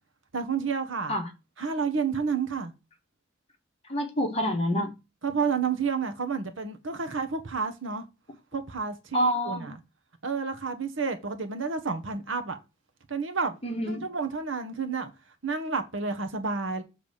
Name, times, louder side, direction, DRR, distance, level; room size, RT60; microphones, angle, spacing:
voice 1, 0.3-1.1 1.6-2.7 5.2-8.0 8.5-9.7 10.2-12.6 13.1-13.6 13.9-15.1 15.4-16.8, right 5 dB, 80° right, 1.2 m, -30 dB
voice 2, 3.9-4.9 9.1-9.7 13.6-14.1, equal, 30° left, 1.5 m, -27 dB
7.2 x 3.6 x 6.4 m
head